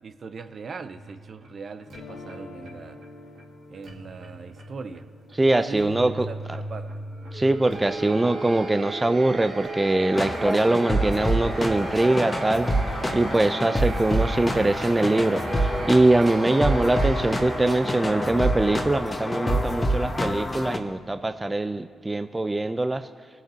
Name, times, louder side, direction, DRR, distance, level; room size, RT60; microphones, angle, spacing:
voice 1, 0.0-3.0 3.7-5.1 5.5-6.9, right 5 dB, 55° right, 9 dB, 0.7 m, -40 dB
sound 1, 0.9-19.0, right 2 dB, 75° right, 2.2 m, -37 dB
sound 2, 1.9-8.0, left 3 dB, 75° left, 1.1 m, -48 dB
voice 2, 5.4-6.3 7.3-12.7 13.1-23.1, right 2 dB, 25° right, 9 dB, 0.5 m, -23 dB
sound 3, 10.1-20.8, equal, 25° left, 1.3 m, -27 dB
20.0 x 7.2 x 2.8 m, 2.2 s
hypercardioid pair, 45°, 0 cm